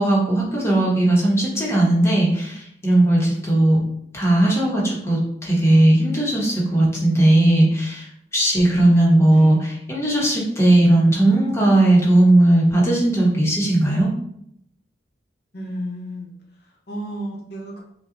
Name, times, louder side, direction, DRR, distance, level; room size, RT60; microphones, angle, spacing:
voice 1, 0.0-3.8 4.1-8.1 8.3-14.1, right 1 dB, 15° left, -4 dB, 1.0 m, -17 dB
voice 2, 4.3-4.6 9.2-9.6 15.5-16.3 16.6-17.8, equal, 60° left, -2 dB, 1.0 m, -33 dB
5.3 x 2.3 x 2.7 m, 0.74 s
head